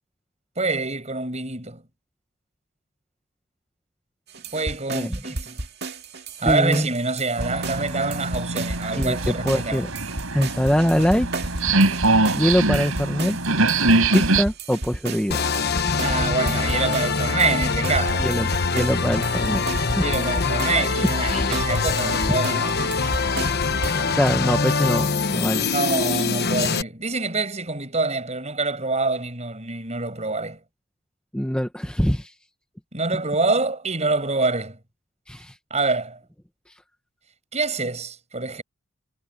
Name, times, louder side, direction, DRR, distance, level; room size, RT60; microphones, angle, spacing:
voice 1, 0.6-1.8 4.5-5.6 6.4-9.8 16.0-18.3 19.9-22.8 25.7-30.6 32.9-34.8 35.7-36.2 37.5-38.6, right 3 dB, 30° right, 7.6 m, -26 dB
sound 1, 4.3-24.0, right 2 dB, 50° right, 2.2 m, -33 dB
voice 2, 6.4-6.9 9.0-9.9 10.3-11.5 12.3-13.4 14.1-15.4 18.2-20.0 21.5-21.6 22.2-22.3 24.1-25.7 31.3-32.3 35.3-35.6, equal, 5° left, 1.1 m, -23 dB
sound 2, 7.4-14.4, right 2 dB, 80° right, 5.3 m, -23 dB
sound 3, 15.3-26.8, left 4 dB, 50° left, 1.2 m, -24 dB
head